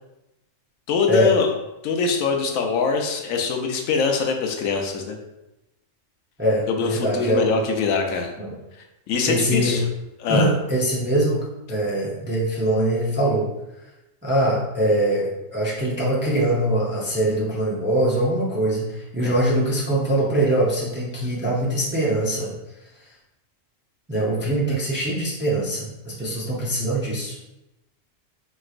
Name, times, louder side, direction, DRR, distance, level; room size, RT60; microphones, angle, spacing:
voice 1, 0.9-1.5 1.8-5.2 6.7-8.3 9.1-9.8 10.2-10.5 19.2-19.4 24.4-24.5, left 5 dB, 85° left, 3 dB, 1.0 m, -23 dB
voice 2, 6.4-7.6 8.4-8.5 9.3-9.8 10.3-13.5 14.2-22.5 24.1-27.4, right 1 dB, 15° right, -6 dB, 0.5 m, -23 dB
4.4 x 3.1 x 2.4 m, 0.94 s
omnidirectional pair, 1.4 m